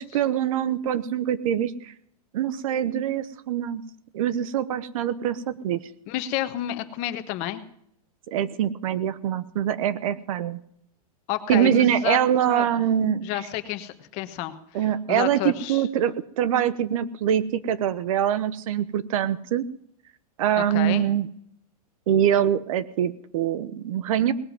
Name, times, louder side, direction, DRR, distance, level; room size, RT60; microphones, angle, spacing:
voice 1, 0.0-1.7 2.3-3.8 4.1-5.8 8.3-10.6 11.5-13.2 14.7-19.7 20.4-21.3 22.1-24.3, right 10 dB, 60° right, 16 dB, 1.0 m, -24 dB
voice 2, 6.1-7.6 11.3-12.2 12.5-12.7 13.2-15.8 20.6-21.1, left 14 dB, 35° left, 9 dB, 1.3 m, -30 dB
19.0 x 7.7 x 9.3 m, 0.70 s
supercardioid pair, 165°, 20 cm